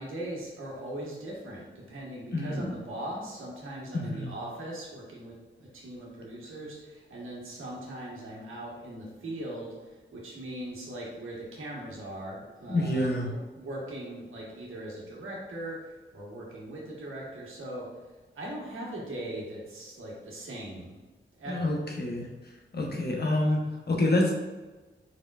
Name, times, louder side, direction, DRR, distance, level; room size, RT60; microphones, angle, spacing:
voice 1, 0.0-17.9 18.3-21.0 21.4-21.7, right 1 dB, 85° right, -4 dB, 1.4 m, -40 dB
voice 2, 2.3-2.7 3.9-4.4 12.7-13.3 21.5-22.3 22.7-24.4, left 1 dB, 50° left, 0 dB, 1.0 m, -27 dB
4.8 x 4.4 x 2.5 m, 1.2 s
cardioid pair, 60°, 21 cm